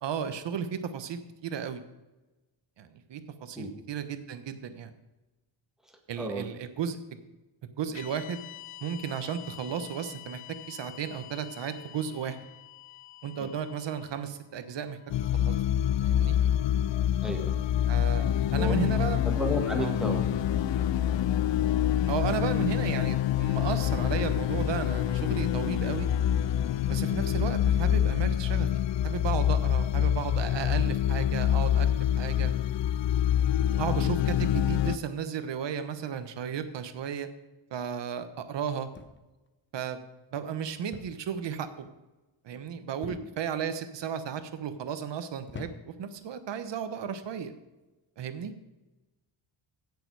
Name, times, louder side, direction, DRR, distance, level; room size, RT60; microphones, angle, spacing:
voice 1, 0.0-1.8 2.8-4.9 6.1-7.2 7.6-8.4 8.8-12.4 13.2-15.0 15.3-15.5 16.0-16.4 17.9-19.2 19.8-20.0 22.1-26.1 26.9-31.9 32.2-32.5 33.8-37.3 37.7-38.9 39.7-40.0 40.3-41.9 42.4-47.5 48.2-48.5, right 7 dB, 60° right, 10 dB, 1.2 m, -34 dB
voice 2, 5.9-6.5 13.4-13.5 17.2-17.6 18.6-18.8 19.2-20.3 20.6-20.8 43.0-43.2, equal, ahead, 1 dB, 1.9 m, -33 dB
sound 1, 7.9-16.2, left 16 dB, 85° left, 0.8 m, -48 dB
sound 2, 15.1-35.0, left 10 dB, 60° left, 0.6 m, -26 dB
sound 3, 38.9-39.5 40.9-41.3 41.6-42.0 43.0-43.6 44.3-44.7 45.5-46.1 47.1-47.3, left 4 dB, 25° left, 0.9 m, -45 dB
16.5 x 6.9 x 4.8 m, 1.1 s
cardioid pair, 130°, 49 cm